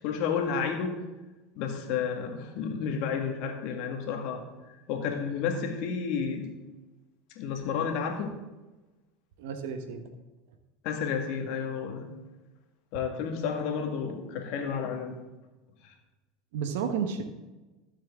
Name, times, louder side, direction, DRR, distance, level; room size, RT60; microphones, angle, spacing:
voice 1, 0.0-1.0 1.6-4.5 4.9-6.5 7.4-8.4 10.8-12.1 12.9-15.2 15.8-15.9, left 6 dB, 65° left, 4 dB, 1.9 m, -31 dB
voice 2, 9.4-10.1 16.5-17.2, right 7 dB, 75° right, 7 dB, 1.2 m, -32 dB
13.5 x 7.5 x 3.7 m, 1.1 s
hypercardioid pair, 90°, 0 cm